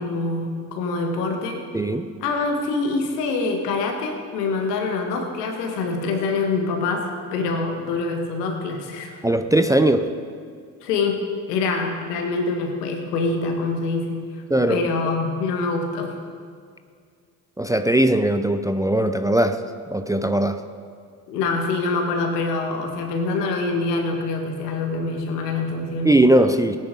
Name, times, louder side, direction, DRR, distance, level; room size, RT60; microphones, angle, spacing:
voice 1, 0.0-1.6 2.2-9.2 10.8-11.2 11.5-16.2 21.3-26.2, left 3 dB, 80° left, 3 dB, 1.8 m, -25 dB
voice 2, 1.7-2.1 9.2-10.1 14.5-14.9 17.6-19.6 19.9-20.6 26.0-26.8, right 1 dB, 10° right, 9 dB, 0.5 m, -19 dB
17.5 x 9.7 x 3.9 m, 2.1 s
hypercardioid pair, 55°, 47 cm